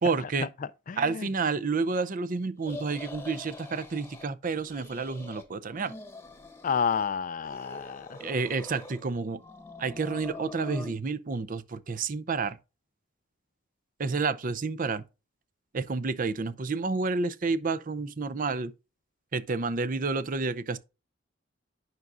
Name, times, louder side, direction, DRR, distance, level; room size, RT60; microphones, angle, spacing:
voice 1, 0.0-0.5 1.0-5.9 8.2-9.4 9.8-12.6 14.0-15.0 15.7-18.7 19.3-20.8, right 4 dB, 45° right, 0.5 m, -30 dB
voice 2, 0.9-1.3 6.6-8.2, left 6 dB, 40° left, 0.4 m, -30 dB
sound 1, 2.6-4.3 4.6-5.4 5.7-7.1 7.4-9.0 9.4-10.9, left 2 dB, 10° left, 1.0 m, -44 dB
9.3 x 6.1 x 2.5 m
head